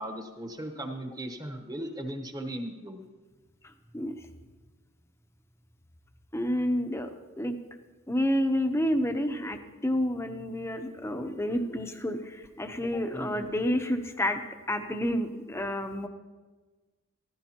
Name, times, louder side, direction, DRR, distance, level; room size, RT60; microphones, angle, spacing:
voice 1, 0.0-3.0 13.1-13.5, right 1 dB, 15° right, 4 dB, 1.0 m, -37 dB
voice 2, 3.6-4.2 6.3-7.6 8.1-14.4 14.7-16.1, equal, 10° left, 6 dB, 0.7 m, -29 dB
16.0 x 14.5 x 2.9 m, 1.3 s
head